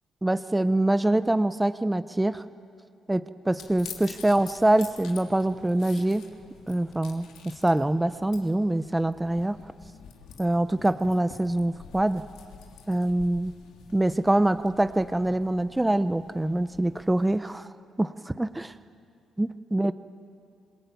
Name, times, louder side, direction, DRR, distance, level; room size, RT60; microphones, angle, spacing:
voice 1, 0.2-2.4 3.1-6.3 6.7-9.6 10.4-12.2 12.9-13.5 13.9-17.7 18.0-18.7 19.4-19.9, right 1 dB, 10° right, 12 dB, 0.8 m, -25 dB
sound 1, 3.6-17.4, left 7 dB, 90° left, 3.1 m, -48 dB
27.0 x 22.0 x 9.3 m, 2.4 s
cardioid pair, 90°, 0 cm